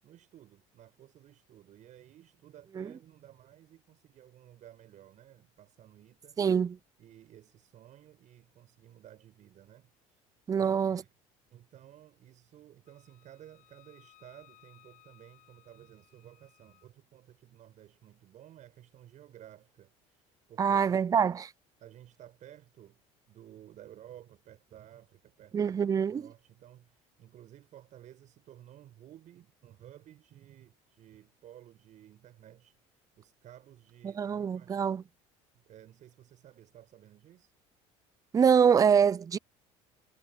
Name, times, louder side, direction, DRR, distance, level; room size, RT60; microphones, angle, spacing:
voice 1, 0.0-6.4 7.0-10.2 10.5-11.1 11.5-21.3 21.8-23.0 23.3-34.9 35.5-37.5, right 12 dB, 55° right, 7.5 m, -55 dB
voice 2, 6.4-6.8 10.5-11.0 20.6-21.3 25.5-26.2 34.2-35.0 38.3-39.4, right 7 dB, 25° right, 0.4 m, -25 dB
Wind instrument woodwind instrument, 12.9-16.9, left 15 dB, 65° left, 6.6 m, -62 dB
supercardioid pair, 95°, 15 cm